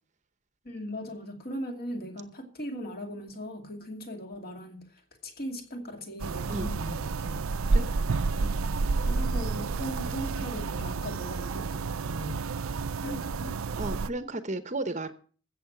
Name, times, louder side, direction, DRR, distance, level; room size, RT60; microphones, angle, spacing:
voice 1, 0.6-7.5 8.4-8.7 9.0-12.4 13.0-13.6, equal, 45° left, 4 dB, 2.5 m, -39 dB
sound 1, 6.2-14.1, right 4 dB, 85° right, 0.6 m, -30 dB
voice 2, 7.6-8.3 13.8-15.1, right 2 dB, 35° right, 11 dB, 0.8 m, -34 dB
15.0 x 7.5 x 5.9 m, 0.43 s
head